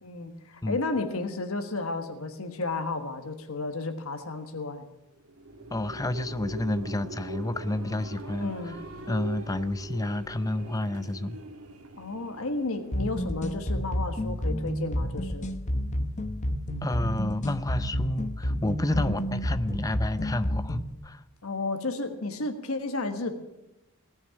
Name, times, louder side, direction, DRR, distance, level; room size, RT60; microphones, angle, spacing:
voice 1, 0.0-4.8 8.4-8.8 12.0-15.5 18.9-19.3 21.4-23.4, left 3 dB, 75° left, 6 dB, 1.4 m, -32 dB
sound 1, 5.2-13.8, right 1 dB, 80° right, 1.7 m, -42 dB
voice 2, 5.7-8.8 9.1-11.4 16.8-21.2, left 1 dB, 15° left, 12 dB, 0.6 m, -30 dB
sound 2, 12.9-20.9, equal, 35° left, 0.9 m, -30 dB
18.0 x 6.5 x 9.9 m, 0.94 s
head